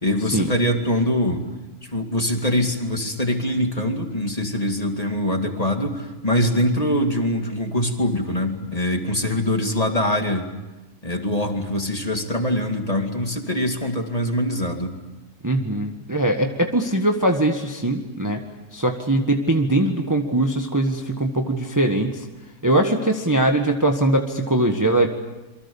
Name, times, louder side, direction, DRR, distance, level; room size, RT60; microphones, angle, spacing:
voice 1, 0.0-1.4 1.8-10.5 11.0-14.9, left 1 dB, 25° left, 4 dB, 2.4 m, -23 dB
voice 2, 15.4-18.4 18.7-22.3 22.6-25.1, right 1 dB, 10° right, 3 dB, 1.4 m, -21 dB
27.5 x 24.0 x 7.1 m, 1.1 s
omnidirectional pair, 1.7 m